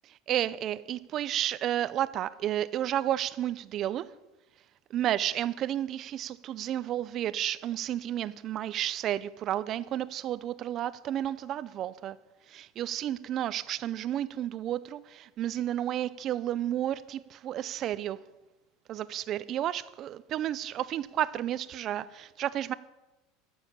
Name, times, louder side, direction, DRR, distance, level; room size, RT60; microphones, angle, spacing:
voice 1, 0.3-4.1 4.9-12.2 12.5-18.2 18.9-22.7, right 11 dB, 35° right, 0.4 m, -32 dB
13.0 x 7.1 x 8.7 m
supercardioid pair, 155°, 0 cm